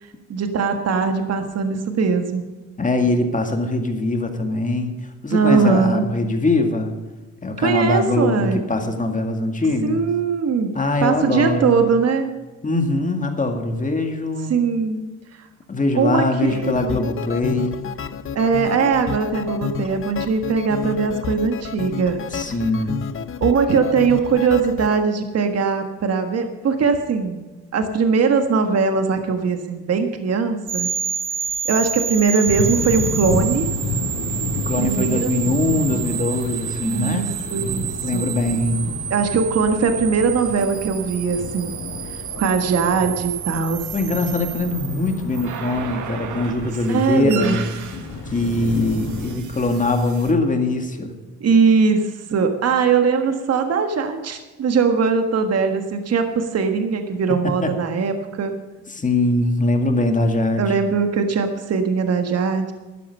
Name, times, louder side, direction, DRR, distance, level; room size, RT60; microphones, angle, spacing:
voice 1, 0.3-2.5 5.3-6.0 7.6-8.6 9.8-12.3 14.5-15.0 15.3-15.5 15.9-17.0 18.3-22.2 23.4-27.5 27.7-30.9 31.6-33.7 34.8-35.3 35.8-36.1 36.8-38.2 39.1-41.8 42.1-43.9 46.9-47.6 51.4-58.6 60.6-62.7, right 5 dB, 55° right, 6 dB, 1.6 m, -20 dB
voice 2, 2.8-6.9 7.4-10.0 10.7-11.8 12.6-14.5 15.7-17.9 22.3-23.1 34.7-37.4 38.0-38.8 43.9-47.7 48.3-51.1 57.6-57.7 58.9-60.8, left 2 dB, 25° left, 5 dB, 2.1 m, -22 dB
sound 1, 16.4-25.0, left 7 dB, 45° left, 0.8 m, -30 dB
sound 2, 30.7-50.3, right 8 dB, 75° right, 1.6 m, -30 dB
sound 3, 32.4-49.4, left 3 dB, 85° left, 2.2 m, -31 dB
12.0 x 12.0 x 5.4 m, 1.2 s
cardioid pair, 90°, 30 cm